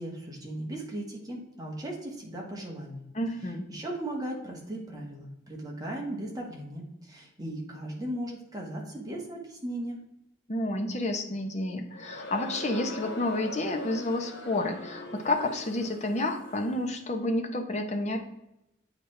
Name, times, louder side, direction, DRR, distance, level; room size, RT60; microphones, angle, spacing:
voice 1, 0.0-3.0 3.7-10.0, right 1 dB, 20° right, -1 dB, 1.5 m, -37 dB
voice 2, 3.1-3.7 10.5-18.2, left 1 dB, 35° left, 4 dB, 0.8 m, -30 dB
Crowd, 11.9-16.9, left 1 dB, 60° left, 1.0 m, -42 dB
8.6 x 4.2 x 3.3 m, 0.88 s
head